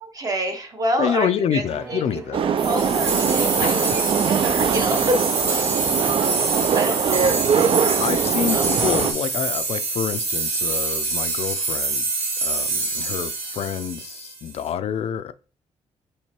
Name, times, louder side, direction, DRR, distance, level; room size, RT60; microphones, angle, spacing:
voice 1, 0.0-2.2 2.6-5.6 6.7-7.3 7.5-8.0 8.5-8.8, right 1 dB, 30° right, 0.9 m, -28 dB
voice 2, 1.0-2.4 3.6-4.0 8.0-12.0 12.4-15.3, left 8 dB, 60° left, 0.4 m, -27 dB
Bowed string instrument, 1.6-7.3, right 3 dB, 10° right, 1.3 m, -43 dB
sound 1, 2.3-9.1, right 7 dB, 50° right, 0.4 m, -22 dB
sound 2, 2.6-14.6, right 3 dB, 70° right, 1.4 m, -25 dB
4.4 x 3.2 x 3.0 m
cardioid pair, 100°, 12 cm